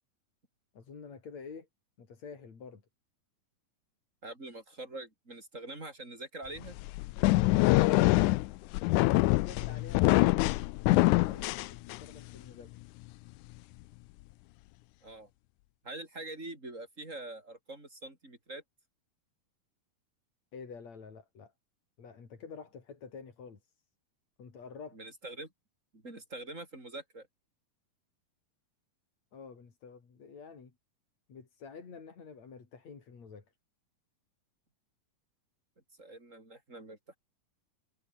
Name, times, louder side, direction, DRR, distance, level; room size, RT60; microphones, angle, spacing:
voice 1, 0.7-1.7 2.0-2.8 8.7-10.5 11.1-12.8 20.5-21.5 22.0-23.7 24.4-25.0 29.3-30.7 31.3-33.4, left 5 dB, 50° left, 4.9 m, -48 dB
voice 2, 4.2-6.8 15.0-15.3 15.8-18.6 24.9-25.5 25.9-27.3 36.0-37.2, right 2 dB, 20° right, 7.4 m, -44 dB
sound 1, 6.6-12.3, left 20 dB, 85° left, 1.8 m, -25 dB
omnidirectional pair, 4.0 m